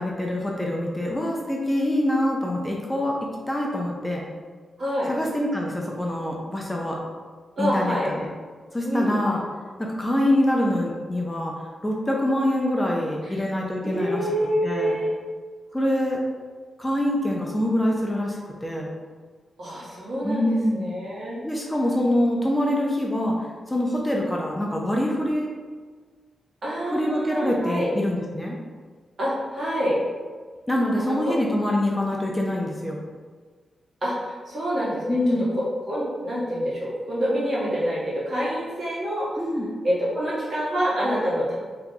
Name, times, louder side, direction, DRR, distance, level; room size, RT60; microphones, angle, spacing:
voice 1, 0.0-3.2 3.5-4.2 5.1-7.0 7.6-8.3 8.7-9.4 9.8-11.5 11.8-14.3 14.6-15.0 15.7-16.2 16.8-18.9 20.2-20.9 21.4-23.4 23.7-25.5 26.9-28.6 30.7-33.0 35.1-35.5 39.4-39.7, left 1 dB, 15° left, -2 dB, 0.5 m, -25 dB
voice 2, 4.8-5.1 7.6-8.1 8.8-9.2 13.2-13.4 13.8-15.4 19.6-21.4 26.6-27.9 29.2-30.0 31.0-31.1 31.8-31.9 34.0-35.2 35.9-39.3 39.8-41.6, equal, 55° right, -8 dB, 1.4 m, -27 dB
2.8 x 2.3 x 3.7 m, 1.5 s
cardioid pair, 70°, 0 cm